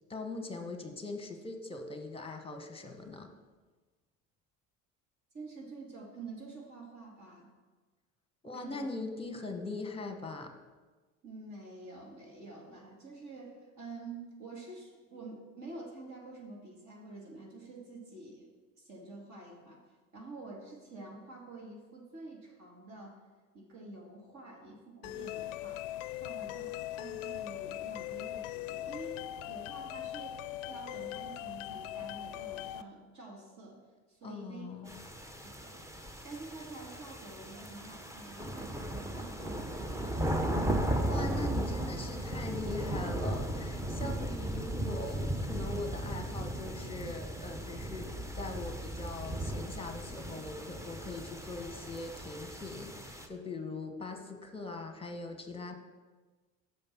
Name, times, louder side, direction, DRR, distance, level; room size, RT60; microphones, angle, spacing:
voice 1, 0.1-3.3 8.4-10.5 34.2-34.9 41.1-55.7, left 3 dB, 15° left, 5 dB, 1.1 m, -41 dB
voice 2, 5.3-7.5 8.5-8.9 11.2-18.5 18.8-19.8 20.1-23.2 23.5-25.8 26.2-29.1 29.5-30.4 30.6-34.9 35.4-35.8 36.2-40.5, right 3 dB, 45° right, -2 dB, 2.1 m, -48 dB
sound 1, 25.0-32.8, left 13 dB, 70° left, 0.5 m, -40 dB
sound 2, 34.9-53.3, right 1 dB, 5° right, 0.8 m, -36 dB
6.7 x 5.1 x 6.0 m, 1.3 s
hypercardioid pair, 75°, 39 cm